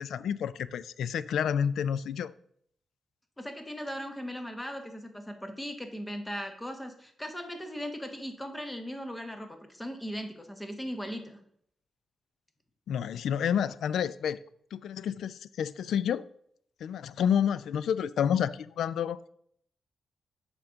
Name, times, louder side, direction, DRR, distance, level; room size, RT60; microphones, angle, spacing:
voice 1, 0.0-2.3 12.9-14.4 14.7-16.2 16.8-19.2, left 8 dB, 85° left, 0.3 m, -29 dB
voice 2, 3.4-11.4, equal, 10° left, 1.0 m, -38 dB
7.8 x 3.8 x 5.8 m
cardioid pair, 115°, 0 cm